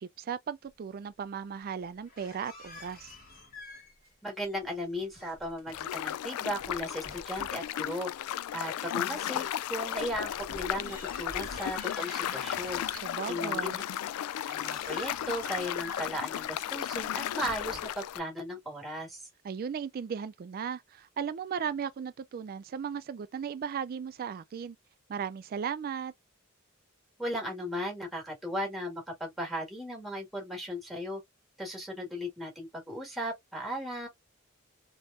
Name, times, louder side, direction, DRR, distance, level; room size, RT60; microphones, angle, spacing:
voice 1, 0.0-3.2 13.0-13.8 19.4-24.8 25.1-26.1, right 7 dB, 45° right, 0.3 m, -36 dB
sound 1, 2.1-4.1 4.4-5.9 6.4-7.6 9.9-13.3 13.8-18.2, left 2 dB, 40° left, 1.5 m, -48 dB
voice 2, 4.2-8.1 8.5-12.8 13.3-13.7 14.5-19.3 27.2-31.2 31.6-34.1, equal, ahead, 1.7 m, -36 dB
sound 2, 5.7-18.2, left 11 dB, 90° left, 0.3 m, -35 dB
3.4 x 3.1 x 2.4 m
head